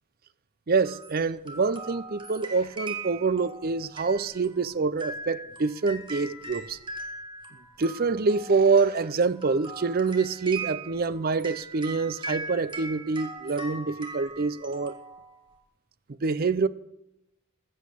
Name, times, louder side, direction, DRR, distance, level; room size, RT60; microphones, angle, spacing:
voice 1, 0.7-6.8 7.8-15.0 16.2-16.7, right 4 dB, 40° right, 0.5 m, -26 dB
sound 1, 0.8-15.6, right 3 dB, 20° right, 1.6 m, -40 dB
14.5 x 7.9 x 8.4 m
head